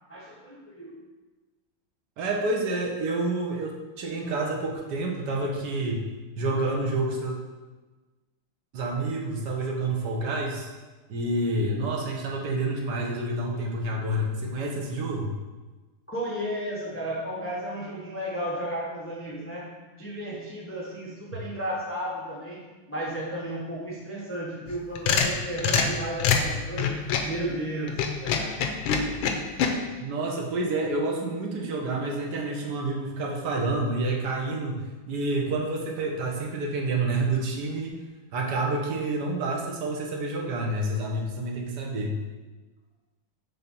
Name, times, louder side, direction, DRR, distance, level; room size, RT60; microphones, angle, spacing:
voice 1, 0.1-0.9 16.1-19.7 20.0-22.6 22.9-27.0 27.2-28.7, right 1 dB, 15° left, -4 dB, 0.4 m, -33 dB
voice 2, 2.2-6.0 6.4-7.4 8.7-10.7 11.1-15.3 30.0-38.0 38.3-42.2, right 2 dB, 60° right, 0 dB, 1.5 m, -28 dB
sound 1, 24.7-27.3 27.9-29.7, left 6 dB, 85° left, 1.5 m, -24 dB
5.8 x 3.8 x 5.3 m, 1.3 s
omnidirectional pair, 2.2 m